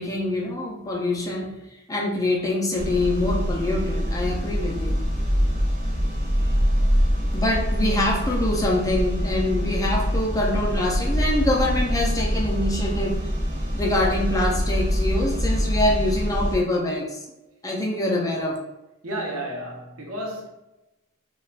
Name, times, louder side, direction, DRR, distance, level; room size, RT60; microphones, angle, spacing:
voice 1, 0.0-1.6 1.9-4.9 7.3-13.3 13.7-17.2 17.6-18.6, left 1 dB, 15° left, 0.5 m, -25 dB
sound 1, 2.7-16.6, equal, 35° right, 0.5 m, -24 dB
voice 2, 19.0-20.5, right 1 dB, 80° right, 0.7 m, -32 dB
3.3 x 2.3 x 2.4 m
head